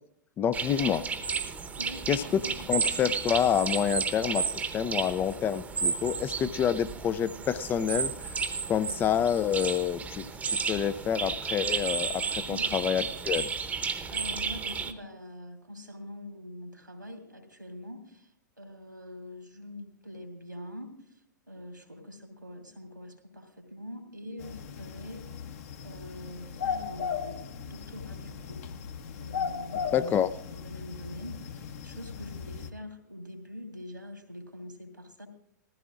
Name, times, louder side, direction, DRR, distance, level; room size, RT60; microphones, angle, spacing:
voice 1, 0.4-1.0 2.1-2.4 2.7-4.5 4.7-8.1 8.7-13.5 29.9-30.3, left 9 dB, 20° left, 14 dB, 0.4 m, -28 dB
sound 1, 0.5-14.9, right 5 dB, 15° right, 0.9 m, -32 dB
voice 2, 1.8-2.6 12.5-12.7 14.1-18.3 18.6-25.5 25.8-28.6 29.2-30.1 30.5-35.3, left 1 dB, 90° right, 3 dB, 2.8 m, -44 dB
sound 2, 24.4-32.7, left 6 dB, 50° left, 1.1 m, -37 dB
19.5 x 15.0 x 2.5 m, 0.71 s
figure-of-eight pair, 105°, 10 cm